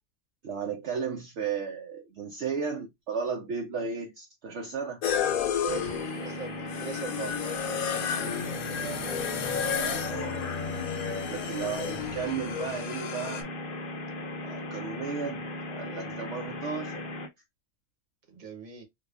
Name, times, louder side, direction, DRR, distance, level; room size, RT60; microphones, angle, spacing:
voice 1, 0.4-5.0 9.7-10.5 11.3-13.5 14.4-17.0, right 6 dB, 60° right, 0.9 m, -34 dB
sound 1, 5.0-13.4, left 7 dB, 80° left, 1.2 m, -32 dB
voice 2, 5.6-9.2 15.8-16.1 18.3-18.8, right 4 dB, 35° right, 1.0 m, -41 dB
sound 2, 5.7-17.3, left 2 dB, 45° left, 0.8 m, -37 dB
4.7 x 2.3 x 2.3 m
omnidirectional pair, 1.4 m